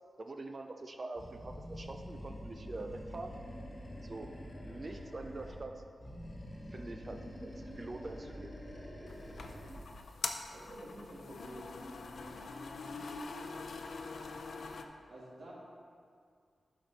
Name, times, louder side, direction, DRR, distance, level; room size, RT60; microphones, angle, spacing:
voice 1, 0.2-3.3 4.0-4.3 4.6-5.7 6.7-8.5, right 2 dB, 35° right, 5 dB, 0.4 m, -44 dB
Animal, 1.2-5.7 6.0-9.9, equal, 25° left, 1.4 m, -46 dB
sound 1, 9.1-14.8, left 4 dB, 70° left, 0.5 m, -43 dB
voice 2, 10.5-11.7 15.1-15.5, right 1 dB, 70° right, -5 dB, 2.2 m, -49 dB
11.5 x 5.2 x 4.1 m, 2.2 s
wide cardioid pair, 125°, 0 cm